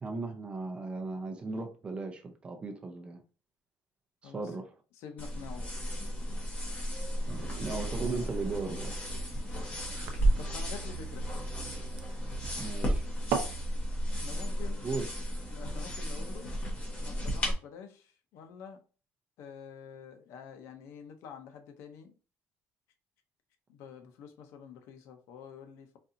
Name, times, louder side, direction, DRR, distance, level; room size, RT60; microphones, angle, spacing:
voice 1, 0.0-3.2 4.2-4.7 7.3-8.9 12.6-13.1 14.8-15.1, right 3 dB, 20° right, 0.5 m, -37 dB
voice 2, 4.9-5.7 10.4-11.2 14.1-14.8 15.5-16.5 17.0-18.8 19.4-22.2 23.7-26.0, left 7 dB, 80° left, 0.6 m, -47 dB
sound 1, 5.2-17.5, equal, 30° left, 1.1 m, -33 dB
sound 2, 7.1-13.6, right 7 dB, 75° right, 0.6 m, -40 dB
4.1 x 2.5 x 2.6 m
cardioid pair, 160°, 5 cm